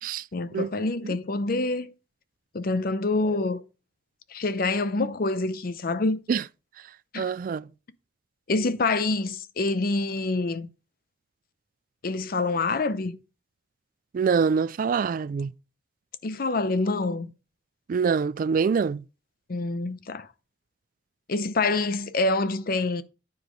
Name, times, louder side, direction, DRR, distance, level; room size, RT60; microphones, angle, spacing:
voice 1, 0.3-1.9 2.5-3.6 4.3-6.2 7.1-7.3 8.5-10.7 12.0-13.2 16.2-17.3 19.5-20.3 21.3-23.0, left 3 dB, 55° left, 0.6 m, -26 dB
voice 2, 7.2-7.7 14.1-15.5 17.9-19.0, right 5 dB, 50° right, 0.3 m, -25 dB
9.5 x 4.9 x 5.1 m
head